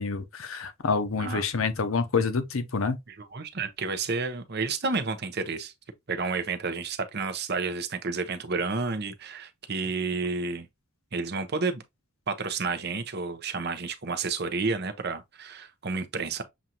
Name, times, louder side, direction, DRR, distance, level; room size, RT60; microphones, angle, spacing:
voice 1, 0.0-3.0, left 4 dB, 75° left, 0.8 m, -27 dB
voice 2, 3.1-5.7 6.1-10.7 11.1-11.8 12.3-16.4, right 4 dB, 50° right, 0.8 m, -30 dB
7.1 x 2.6 x 2.8 m
head